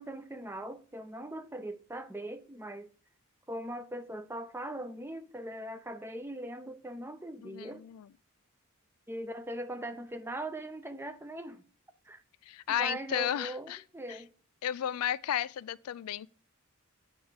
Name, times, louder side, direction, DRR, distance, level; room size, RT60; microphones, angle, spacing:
voice 1, 0.0-2.9 3.5-7.8 9.1-11.6 12.0-12.2 12.7-14.3, right 1 dB, 10° right, 0.5 m, -40 dB
voice 2, 7.4-8.1 12.5-13.8 14.1-14.2 14.6-16.3, left 10 dB, 85° left, 0.3 m, -33 dB
8.7 x 3.4 x 6.3 m
head